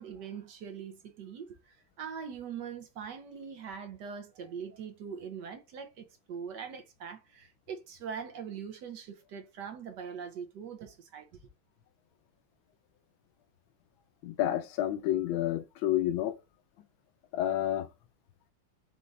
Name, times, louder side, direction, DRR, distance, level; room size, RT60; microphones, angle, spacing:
voice 1, 0.0-11.3, right 7 dB, 65° right, 1.2 m, -42 dB
voice 2, 14.2-16.3 17.3-17.9, left 12 dB, 75° left, 1.3 m, -29 dB
5.2 x 2.5 x 3.2 m
omnidirectional pair, 2.2 m